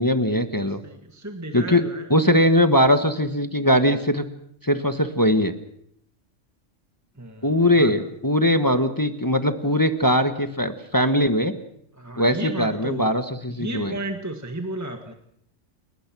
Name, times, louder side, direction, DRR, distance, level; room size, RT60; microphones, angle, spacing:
voice 1, 0.0-0.8 1.5-1.8 2.1-4.3 4.6-5.5 7.4-11.6 12.2-13.9, left 1 dB, 15° left, 8 dB, 1.2 m, -20 dB
voice 2, 0.8-2.0 7.2-7.9 12.0-13.1 13.5-15.1, right 1 dB, 15° right, 5 dB, 1.8 m, -33 dB
29.5 x 19.0 x 6.1 m, 0.71 s
omnidirectional pair, 1.2 m